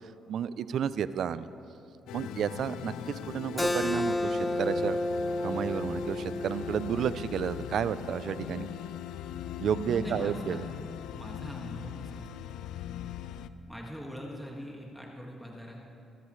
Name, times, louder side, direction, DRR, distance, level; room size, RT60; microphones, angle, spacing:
voice 1, 0.3-1.5 2.1-5.0 5.4-8.7 9.6-10.6, right 8 dB, 65° right, 15 dB, 0.5 m, -31 dB
sound 1, 2.1-13.5, left 10 dB, 90° left, 0.4 m, -40 dB
Keyboard (musical), 3.6-8.8, left 1 dB, 15° left, 0.6 m, -32 dB
voice 2, 9.9-10.6 11.1-12.3 13.7-15.8, equal, ahead, -2 dB, 1.9 m, -41 dB
23.5 x 13.5 x 3.2 m, 2.6 s
cardioid pair, 90°, 0 cm